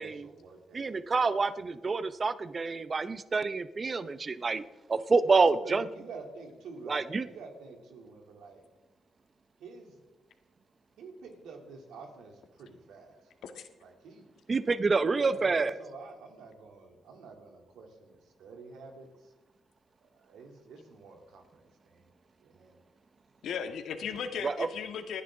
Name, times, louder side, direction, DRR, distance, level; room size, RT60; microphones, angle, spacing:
voice 1, 0.0-1.2 1.6-2.1 5.6-8.7 9.6-10.0 11.0-13.3 13.8-14.3 15.1-19.3 20.0-22.1 22.4-22.8, right 4 dB, 90° right, 2 dB, 3.0 m, -49 dB
voice 2, 0.7-4.6 4.9-5.8 6.9-7.2 14.5-15.7 24.4-24.7, right 4 dB, 35° right, 14 dB, 0.6 m, -27 dB
voice 3, 23.4-25.2, left 7 dB, 75° left, 6 dB, 1.7 m, -36 dB
28.5 x 9.9 x 3.8 m, 1.1 s
cardioid pair, 95°, 0 cm